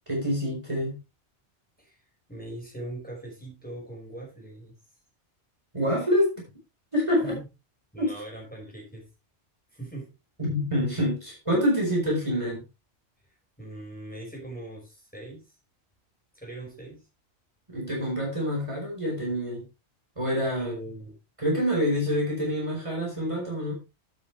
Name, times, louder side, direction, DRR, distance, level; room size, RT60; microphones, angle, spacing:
voice 1, 0.1-1.0 5.7-6.5 6.9-7.4 8.0-8.1 10.4-12.6 17.7-19.6 20.2-20.7 21.4-23.7, equal, 25° right, -2 dB, 4.6 m, -26 dB
voice 2, 2.3-4.7 7.2-7.5 7.9-9.1 9.7-10.1 13.6-15.4 16.3-17.0 20.6-21.2, right 1 dB, 5° left, -2 dB, 5.4 m, -40 dB
11.0 x 8.4 x 3.3 m, 0.26 s
omnidirectional pair, 1.2 m